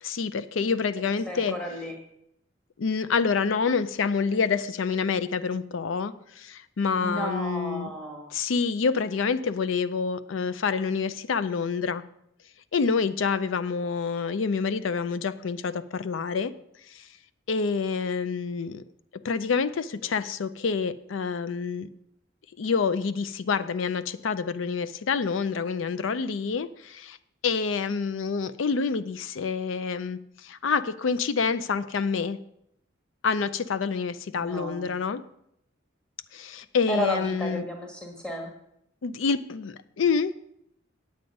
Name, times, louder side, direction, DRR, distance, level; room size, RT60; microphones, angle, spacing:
voice 1, 0.0-1.6 2.8-7.9 8.3-12.0 12.7-16.5 17.5-18.8 19.2-21.9 22.6-27.2 27.4-30.2 30.4-32.4 33.2-35.2 36.3-37.7 39.0-40.3, left 5 dB, 75° left, 15 dB, 0.5 m, -27 dB
voice 2, 1.3-1.9 6.9-8.3 34.4-34.9 36.9-38.5, right 1 dB, 5° left, 1 dB, 1.4 m, -33 dB
9.3 x 8.1 x 5.2 m, 0.76 s
head